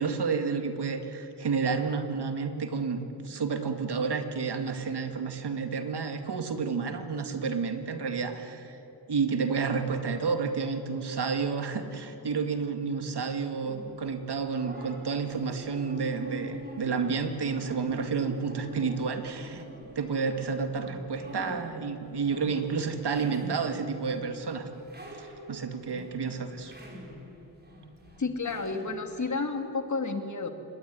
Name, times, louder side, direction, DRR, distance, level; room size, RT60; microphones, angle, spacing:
voice 1, 0.0-8.8 9.1-19.7 20.0-24.7 25.2-26.7, right 5 dB, 75° right, 7 dB, 2.3 m, -30 dB
sound 1, 13.6-29.3, right 1 dB, 25° right, 5.1 m, -45 dB
voice 2, 28.2-30.5, left 4 dB, 45° left, 6 dB, 2.4 m, -31 dB
26.0 x 20.5 x 9.8 m, 3.0 s
wide cardioid pair, 125°, 40 cm